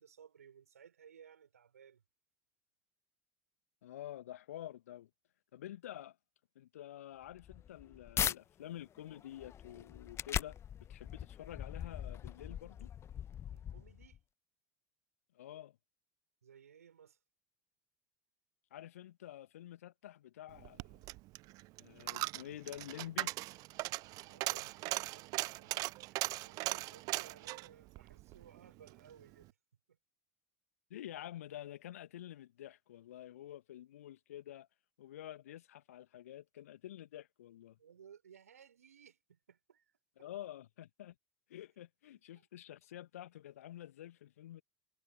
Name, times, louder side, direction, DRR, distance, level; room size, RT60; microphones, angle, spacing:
voice 1, 0.0-2.0 13.5-14.2 16.4-17.2 22.0-22.1 24.2-29.5 29.9-30.0 37.8-39.8 40.2-40.3, right 8 dB, 75° right, 5.6 m, -60 dB
voice 2, 3.8-5.1 5.5-6.2 6.5-12.9 15.3-15.8 18.7-21.0 21.8-23.3 30.9-34.7 35.0-37.8 40.2-41.1 41.5-44.6, left 12 dB, 70° left, 1.6 m, -49 dB
sound 1, 7.2-8.4 8.9-14.2, left 9 dB, 35° left, 1.1 m, -40 dB
Coin (dropping), 20.6-29.0 29.3-29.4, right 21 dB, 50° right, 0.5 m, -39 dB
figure-of-eight pair, 70°, 8 cm